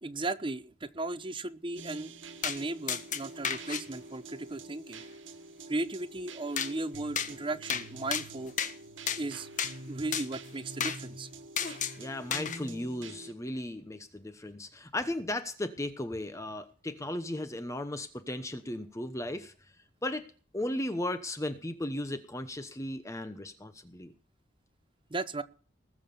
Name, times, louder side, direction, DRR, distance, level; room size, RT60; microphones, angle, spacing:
voice 1, 0.0-2.1 2.4-5.0 5.7-8.5 9.2-9.5 9.9-11.3 25.1-25.4, right 2 dB, 25° right, 13 dB, 0.9 m, -36 dB
sound 1, 1.8-13.3, right 2 dB, 80° right, 1.8 m, -47 dB
sound 2, 2.4-2.6 2.9-3.8 6.6-6.7 7.2-7.3 7.7-7.9 8.1-8.7 9.1-9.2 9.6-9.7 10.1-10.3 10.8-11.0 11.6-12.0 12.3-12.6, left 7 dB, 40° left, 1.5 m, -32 dB
voice 2, 12.0-19.5 20.0-20.2 20.5-24.1, left 1 dB, 15° left, 10 dB, 1.0 m, -36 dB
20.0 x 7.4 x 6.9 m, 0.39 s
head